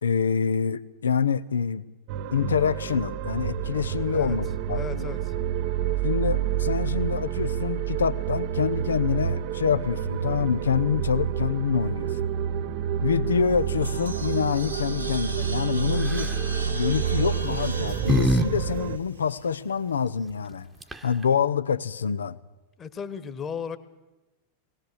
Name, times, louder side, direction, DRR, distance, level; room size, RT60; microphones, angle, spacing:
voice 1, 0.0-1.9 2.3-5.1 6.0-12.1 13.0-16.3 16.7-20.7 21.0-22.4, left 7 dB, 70° left, 15 dB, 0.8 m, -26 dB
sound 1, 2.1-19.0, right 9 dB, 45° right, 0.9 m, -28 dB
voice 2, 4.7-5.3 22.8-23.8, left 7 dB, 25° left, 11 dB, 1.5 m, -35 dB
sound 2, 13.4-19.7, right 1 dB, 90° right, 3.1 m, -39 dB
sound 3, 16.0-16.4 17.4-18.5 18.8-18.9 20.5-20.6 20.8-21.2, equal, 10° right, 1.2 m, -25 dB
21.0 x 18.0 x 8.0 m, 1.1 s
figure-of-eight pair, 90°, 0 cm